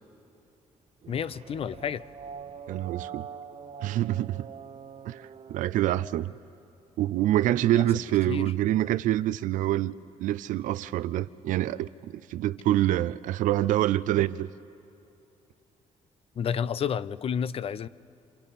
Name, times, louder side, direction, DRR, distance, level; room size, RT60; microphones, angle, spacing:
sound 1, 1.0-6.6, right 7 dB, 50° right, 0.9 m, -44 dB
voice 1, 1.1-2.0 7.7-8.5 16.4-17.9, left 8 dB, 50° left, 0.5 m, -31 dB
voice 2, 2.7-3.3 3.8-4.5 5.1-6.3 7.0-9.9 10.2-14.5, right 13 dB, 90° right, 0.4 m, -26 dB
27.5 x 27.0 x 4.2 m
cardioid pair, 105°, 13 cm